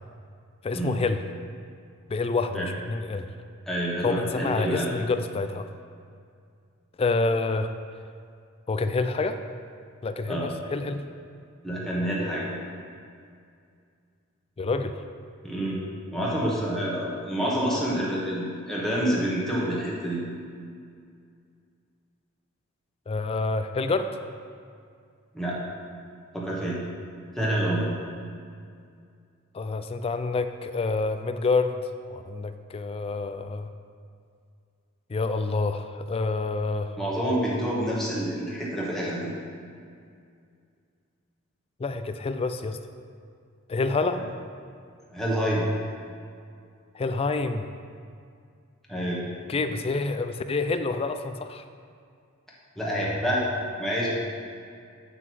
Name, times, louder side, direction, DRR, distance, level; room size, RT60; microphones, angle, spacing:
voice 1, 0.6-1.2 2.1-3.3 4.0-5.7 7.0-7.7 8.7-9.4 10.0-11.1 14.6-15.0 23.1-24.2 29.5-31.8 32.1-33.7 35.1-37.0 41.8-42.8 43.7-44.2 46.9-47.7 49.5-51.6, left 3 dB, 30° left, 9 dB, 0.3 m, -27 dB
voice 2, 3.7-4.9 10.3-10.5 11.6-12.5 15.4-15.8 16.1-20.2 25.3-25.6 26.3-26.8 27.3-27.9 37.0-39.3 45.1-45.7 48.9-49.2 52.8-53.4 53.8-54.1, right 1 dB, ahead, -6 dB, 1.3 m, -27 dB
7.7 x 5.9 x 4.7 m, 2.3 s
head